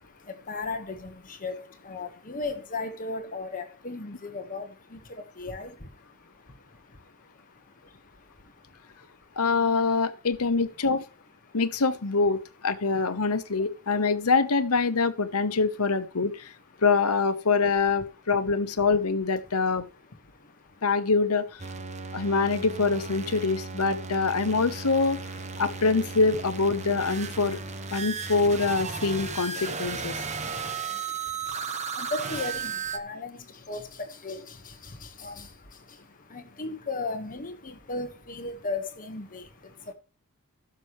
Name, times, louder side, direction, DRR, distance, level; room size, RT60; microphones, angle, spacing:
voice 1, 0.0-9.4 11.5-11.6 13.6-13.7 20.0-20.8 21.9-22.3 27.9-28.2 30.1-39.9, left 3 dB, 40° left, 1.4 m, -38 dB
voice 2, 9.4-11.0 11.5-16.5 16.8-19.8 20.8-21.6 22.1-25.2 25.6-27.6 27.9-30.2, left 4 dB, 85° left, 1.0 m, -25 dB
sound 1, 21.6-33.0, right 5 dB, 30° right, 1.0 m, -35 dB
15.5 x 6.9 x 3.1 m
head